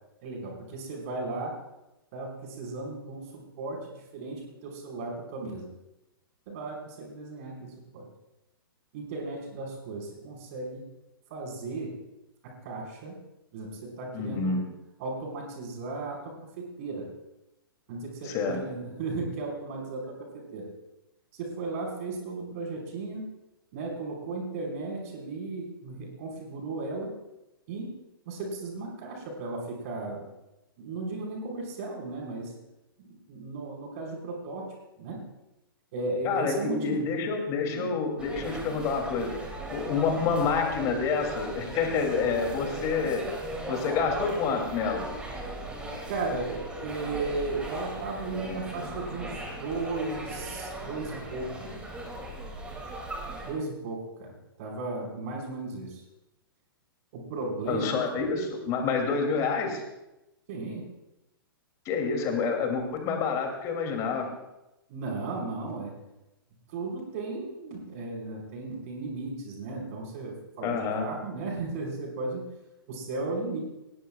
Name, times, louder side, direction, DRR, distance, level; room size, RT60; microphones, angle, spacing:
voice 1, 0.2-1.6 2.1-5.7 6.5-8.1 8.9-10.8 11.3-12.0 12.4-13.1 13.5-14.6 15.0-17.1 17.9-20.7 21.3-23.3 23.7-27.1 27.7-27.9 28.3-30.3 30.8-32.5 33.0-35.2 35.9-37.0 37.6-37.9 46.1-51.7 53.4-56.0 57.1-58.2 60.5-60.8 64.9-66.0 66.7-72.5 72.9-73.6, right 3 dB, 40° right, -1 dB, 5.2 m, -35 dB
voice 2, 14.1-14.7 18.2-18.6 36.2-39.4 39.7-43.3 43.7-45.0 57.7-59.8 61.8-64.3 70.6-71.1, left 5 dB, 25° left, 3 dB, 3.0 m, -28 dB
sound 1, 38.2-53.5, right 1 dB, 10° right, 2.7 m, -38 dB
22.5 x 18.5 x 2.4 m, 0.95 s
figure-of-eight pair, 115°, 12 cm